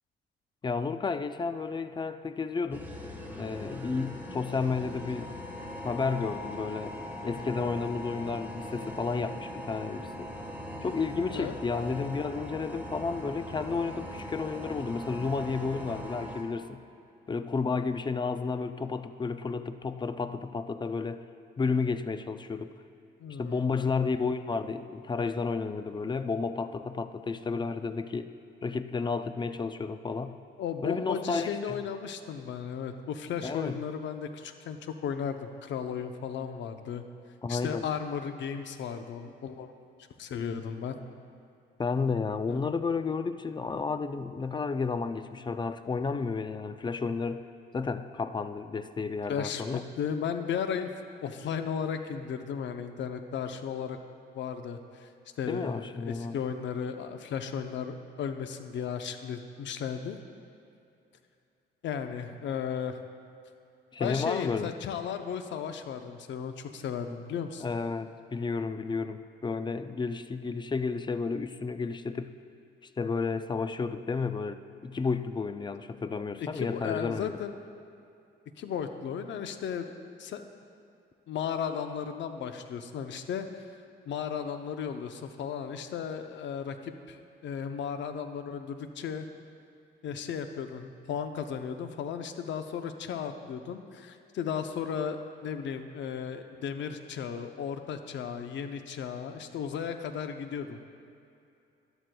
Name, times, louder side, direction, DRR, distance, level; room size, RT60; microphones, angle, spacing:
voice 1, 0.6-2.9 3.3-5.3 5.8-7.0 7.2-10.3 10.8-16.8 17.3-21.2 21.6-22.7 23.4-28.3 28.6-30.4 30.8-31.8 33.4-33.8 37.4-37.9 41.8-47.5 47.7-49.8 55.5-56.4 63.9-64.7 67.6-72.4 73.0-77.4, left 4 dB, 25° left, 11 dB, 0.4 m, -32 dB
sound 1, 2.7-16.4, left 1 dB, 10° right, 1.4 m, -40 dB
voice 2, 23.2-23.6 30.6-37.0 37.5-39.7 40.2-40.9 42.5-42.6 49.3-50.9 51.2-54.0 54.3-55.1 55.4-60.2 61.8-63.0 64.0-67.6 76.4-77.6 78.6-80.4 81.3-83.7 84.1-87.2 87.4-89.3 90.0-100.8, left 7 dB, 65° left, 7 dB, 0.7 m, -35 dB
12.5 x 12.0 x 2.3 m, 2.6 s
cardioid pair, 90°, 20 cm